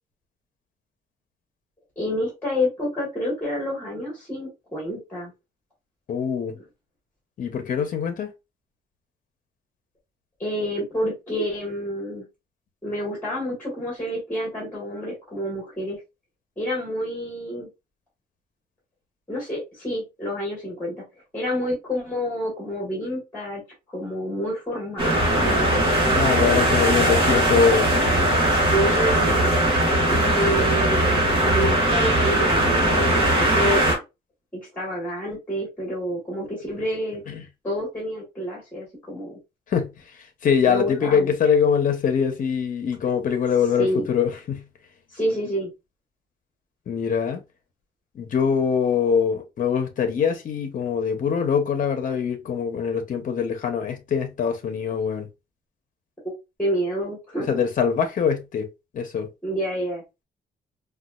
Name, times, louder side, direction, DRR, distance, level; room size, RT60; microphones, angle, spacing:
voice 1, 2.0-5.3 10.4-12.2 12.8-16.0 16.6-17.7 19.3-21.0 21.3-23.6 23.9-25.8 28.4-29.4 30.1-34.0 34.5-37.2 37.6-39.4 40.6-41.3 43.8-44.1 45.1-45.7 56.6-57.6 59.4-60.0, equal, 10° left, 1.4 m, -28 dB
voice 2, 6.1-6.5 7.4-8.3 26.1-28.1 33.3-33.4 37.3-37.4 39.7-39.9 40.4-44.6 46.9-47.4 48.1-55.3 57.5-59.3, left 7 dB, 50° left, 0.7 m, -23 dB
sound 1, 25.0-33.9, right 1 dB, 30° right, 1.3 m, -20 dB
4.1 x 2.3 x 2.2 m
wide cardioid pair, 165°, 17 cm